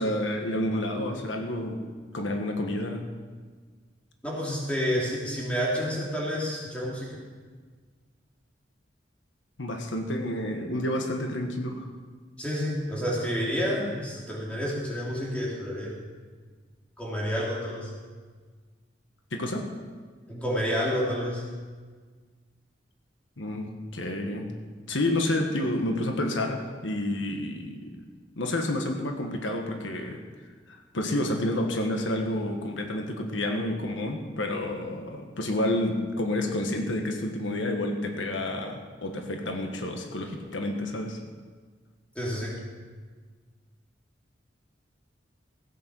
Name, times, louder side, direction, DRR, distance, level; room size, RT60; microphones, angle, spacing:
voice 1, 0.0-1.8 2.1-3.1 9.6-11.9 19.3-19.7 23.4-24.5 24.9-28.0 28.4-30.2 30.7-41.2, left 1 dB, 85° left, 4 dB, 1.4 m, -29 dB
voice 2, 4.2-7.1 12.4-15.9 17.0-17.9 20.3-21.5 42.1-42.6, equal, 5° left, -5 dB, 2.9 m, -29 dB
15.5 x 8.7 x 6.1 m, 1.5 s
head